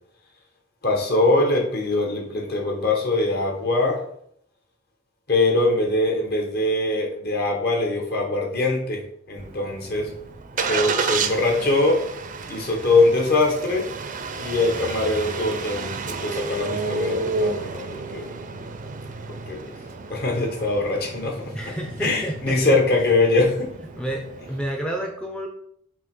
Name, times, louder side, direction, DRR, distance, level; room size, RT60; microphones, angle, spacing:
voice 1, 0.8-4.0 5.3-10.2 10.6-12.1 12.5-13.9 14.4-18.3 19.3-19.6 20.1-21.6 22.0-23.7, left 2 dB, 50° left, 1 dB, 1.4 m, -22 dB
Engine starting, 9.4-24.7, right 4 dB, 40° right, 0.6 m, -31 dB
voice 2, 21.5-22.8 24.0-25.5, right 1 dB, 5° left, 0 dB, 0.6 m, -30 dB
5.9 x 3.0 x 5.4 m, 0.67 s
head